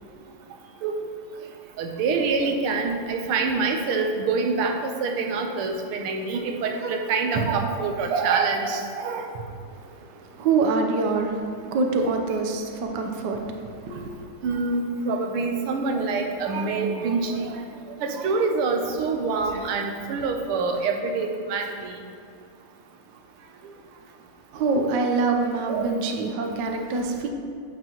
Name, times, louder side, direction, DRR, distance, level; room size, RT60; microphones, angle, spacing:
voice 1, 1.8-4.7 5.0-9.2 14.4-17.5 18.0-21.9 25.7-25.9, right 4 dB, 85° right, 3 dB, 1.7 m, -25 dB
voice 2, 9.7-14.3 24.5-27.3, right 4 dB, 65° right, 3 dB, 1.2 m, -25 dB
9.3 x 8.2 x 3.0 m, 2.3 s
omnidirectional pair, 2.4 m